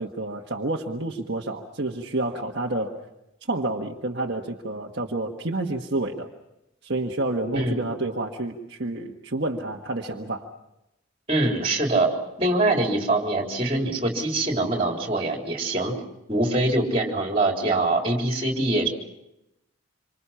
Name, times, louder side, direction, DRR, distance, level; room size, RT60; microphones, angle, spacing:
voice 1, 0.0-3.0 3.5-6.3 6.8-10.5, right 2 dB, 55° right, -1 dB, 1.5 m, -29 dB
voice 2, 11.3-15.9 16.3-18.9, right 2 dB, 25° right, 1 dB, 3.8 m, -24 dB
27.0 x 26.0 x 5.8 m, 0.88 s
head